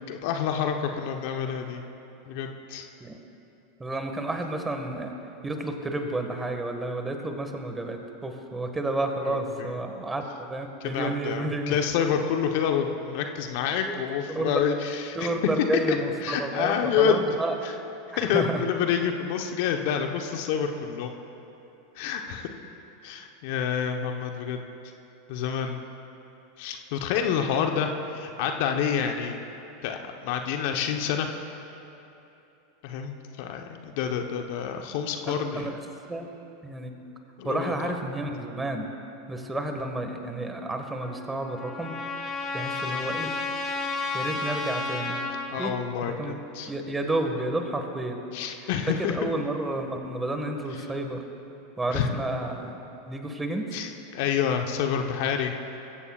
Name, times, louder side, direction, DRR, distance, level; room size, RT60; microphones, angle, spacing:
voice 1, 0.1-1.8 2.2-2.9 9.2-9.7 10.8-15.3 15.9-16.0 16.2-17.2 17.6-17.7 18.2-21.1 21.9-22.5 23.0-24.6 25.3-25.8 26.6-29.4 29.8-31.3 32.8-35.7 37.4-37.9 42.8-43.1 45.5-46.7 48.3-49.2 51.9-52.1 53.7-55.5, left 7 dB, 60° left, 4 dB, 1.0 m, -28 dB
voice 2, 3.8-5.1 5.4-10.2 10.5-11.8 13.8-14.0 14.3-14.6 15.1-17.5 18.1-18.6 28.8-29.0 35.3-35.8 36.1-36.3 36.6-36.9 37.4-38.8 39.3-41.9 42.5-43.3 44.1-45.2 45.6-45.7 46.0-48.2 49.0-51.2 51.8-52.8 53.1-53.8, right 2 dB, 15° right, 4 dB, 1.7 m, -31 dB
Trumpet, 41.0-45.5, left 3 dB, 35° left, 3.3 m, -32 dB
22.0 x 15.5 x 2.5 m, 3.0 s
hypercardioid pair, 90°, 0 cm